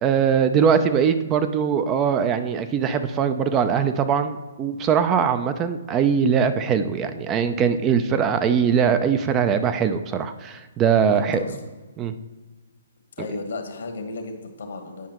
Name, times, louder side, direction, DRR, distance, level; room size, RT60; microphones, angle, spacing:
voice 1, 0.0-11.4 12.0-12.1, right 7 dB, 20° right, 10 dB, 0.4 m, -21 dB
voice 2, 11.1-11.7 13.2-15.1, left 3 dB, 70° left, 5 dB, 1.1 m, -34 dB
9.5 x 4.9 x 2.9 m, 1.2 s
hypercardioid pair, 140°, 0 cm